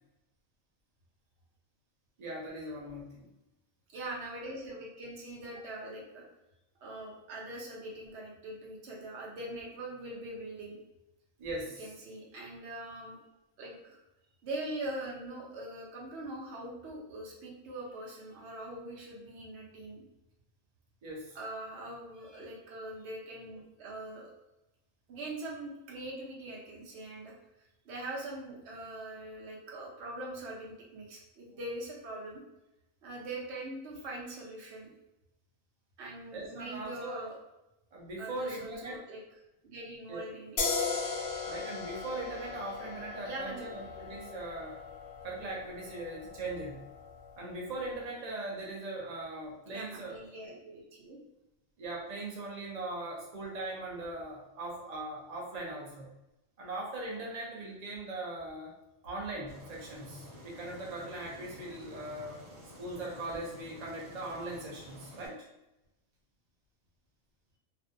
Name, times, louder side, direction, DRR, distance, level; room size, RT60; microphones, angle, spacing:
voice 1, 2.2-3.2 11.4-11.8 21.0-21.4 36.3-37.3 37.9-39.0 40.1-40.2 41.5-44.8 45.2-46.8 47.4-50.2 51.8-56.1 56.6-58.7 59.0-62.4 62.8-65.5, right 2 dB, 45° right, -3 dB, 0.5 m, -40 dB
voice 2, 3.9-6.2 6.8-10.8 11.8-13.2 13.6-14.0 14.4-20.0 21.3-24.3 25.1-32.4 33.0-34.9 36.0-37.4 38.2-39.2 39.6-40.9 43.2-43.8 49.7-51.2, right 1 dB, 60° right, -3 dB, 0.9 m, -42 dB
sound 1, 40.6-47.9, left 5 dB, 65° left, 0.7 m, -38 dB
Aircraft, 59.5-65.3, equal, 85° right, 1.2 m, -50 dB
2.5 x 2.1 x 2.5 m, 0.93 s
omnidirectional pair, 1.4 m